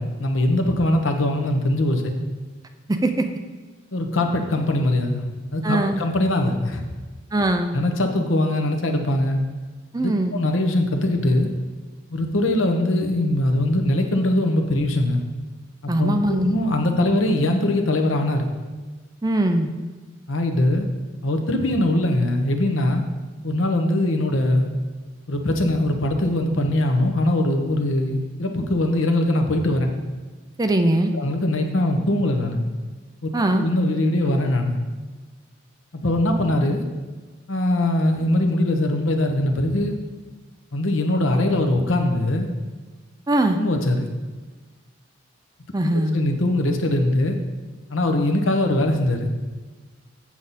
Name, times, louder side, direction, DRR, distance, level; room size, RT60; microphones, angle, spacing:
voice 1, 0.0-2.1 3.9-5.3 5.5-6.8 7.7-9.4 10.0-11.5 12.1-15.2 15.8-18.5 20.3-20.9 21.2-23.0 23.4-24.7 25.3-29.9 31.1-32.6 33.5-34.8 36.0-36.8 37.5-39.9 40.7-42.5 43.6-44.1 45.8-47.4 47.9-49.3, left 1 dB, 80° left, 4 dB, 1.0 m, -21 dB
voice 2, 5.6-6.0 7.3-7.7 9.9-10.4 15.9-16.5 19.2-19.7 30.6-31.1 33.3-33.7 43.3-43.6 45.7-46.2, right 1 dB, 20° right, 6 dB, 0.5 m, -21 dB
7.7 x 7.3 x 4.1 m, 1.3 s
head